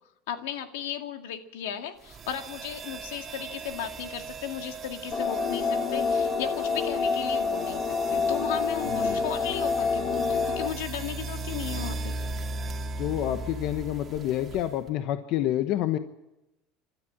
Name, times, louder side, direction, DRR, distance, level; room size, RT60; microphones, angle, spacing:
voice 1, 0.3-7.8 8.1-12.1, left 10 dB, 90° left, 6 dB, 2.1 m, -35 dB
sound 1, 2.0-14.9, right 3 dB, 30° right, 2.0 m, -38 dB
sound 2, 5.1-10.7, left 4 dB, 40° left, 2.8 m, -27 dB
voice 2, 8.9-9.2 13.0-16.0, left 12 dB, 60° left, 9 dB, 1.0 m, -28 dB
26.0 x 13.0 x 8.7 m, 0.96 s
supercardioid pair, 125°, 0 cm